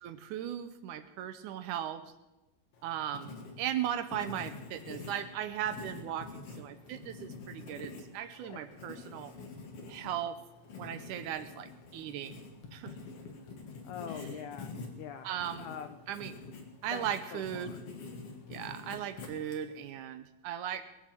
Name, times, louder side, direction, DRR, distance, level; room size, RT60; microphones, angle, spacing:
voice 1, 0.0-2.0 2.8-9.3 9.9-10.4 10.8-12.4 12.7-13.0 15.2-15.7 16.1-16.3 16.8-17.7 18.5-20.8, right 10 dB, 75° right, 11 dB, 1.9 m, -37 dB
Writing, 2.7-19.9, left 4 dB, 50° left, 2.4 m, -47 dB
voice 2, 13.8-15.3 15.6-16.0 16.9-17.0 17.3-17.8, left 8 dB, 75° left, 9 dB, 1.9 m, -44 dB
21.0 x 7.4 x 7.5 m, 1.0 s
omnidirectional pair, 4.1 m